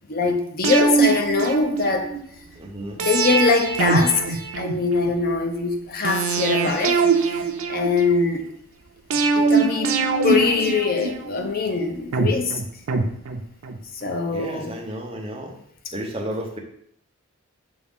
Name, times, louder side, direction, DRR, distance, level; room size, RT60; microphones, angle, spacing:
voice 1, 0.1-2.1 3.0-7.4 7.7-8.5 9.1-12.6 13.9-14.8, left 4 dB, 45° left, 0.5 m, -23 dB
sound 1, 0.6-2.2 3.0-5.1 6.0-8.3 9.1-11.5 12.1-13.8 14.1-14.2, right 4 dB, 75° right, 0.5 m, -22 dB
voice 2, 2.6-3.0 14.3-15.5 15.9-16.6, right 1 dB, 25° right, 0.7 m, -32 dB
6.1 x 2.5 x 3.5 m
head